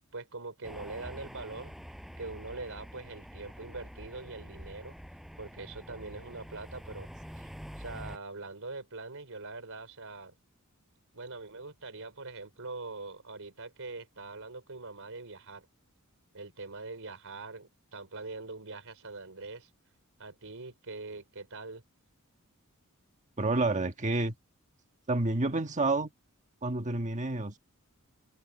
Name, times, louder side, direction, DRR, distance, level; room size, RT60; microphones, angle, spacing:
voice 1, 0.1-1.7 2.2-5.0 5.4-7.1 7.3-10.3 11.1-15.7 16.3-19.7 20.2-21.8, right 3 dB, 65° right, 4.5 m, -43 dB
sound 1, 0.6-8.2, equal, ahead, 5.8 m, -46 dB
voice 2, 23.4-24.3 25.1-26.1 26.6-27.6, right 2 dB, 35° right, 1.4 m, -29 dB
head